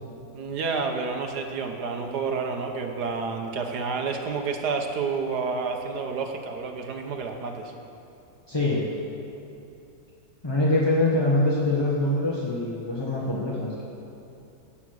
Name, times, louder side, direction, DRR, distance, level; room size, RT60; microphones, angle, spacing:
voice 1, 0.3-7.7, right 4 dB, 60° right, 4 dB, 1.5 m, -29 dB
voice 2, 8.5-8.8 10.4-13.8, left 2 dB, 15° left, -6 dB, 1.1 m, -24 dB
17.5 x 7.3 x 6.3 m, 2.7 s
omnidirectional pair, 2.2 m